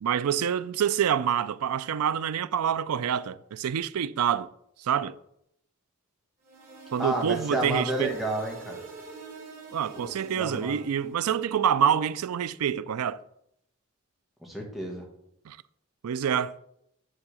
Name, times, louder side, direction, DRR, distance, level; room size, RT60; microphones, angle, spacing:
voice 1, 0.0-4.5 4.8-5.2 6.9-8.1 9.7-13.2 15.5-15.6 16.0-16.6, right 8 dB, 85° right, 0.4 m, -27 dB
sound 1, 6.4-11.2, right 4 dB, 45° right, 3.0 m, -45 dB
voice 2, 7.0-8.8 10.0-10.1 10.4-10.8 14.4-15.0, right 1 dB, ahead, 1.5 m, -31 dB
10.0 x 3.6 x 6.2 m
head